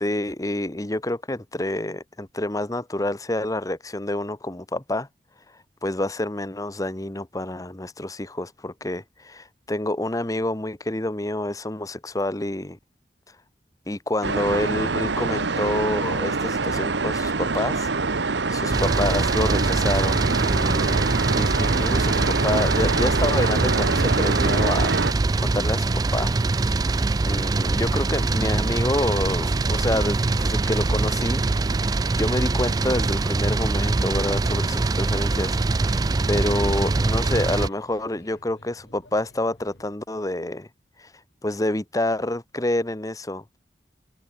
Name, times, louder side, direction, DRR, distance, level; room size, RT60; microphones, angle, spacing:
voice 1, 0.0-5.1 5.8-12.8 13.9-21.1 21.3-24.9 25.4-26.3 26.6-26.8 27.3-31.4 31.8-36.0 36.3-40.7 41.0-41.1 41.4-43.6, left 1 dB, 20° left, 1.1 m, -28 dB
sound 1, 14.2-25.1, right 3 dB, 90° right, 1.2 m, -25 dB
sound 2, 18.7-37.7, right 3 dB, 20° right, 0.3 m, -23 dB
Male speech man speaking / Child speech kid speaking / Chatter, 22.6-39.9, left 1 dB, 80° left, 6.7 m, -53 dB
head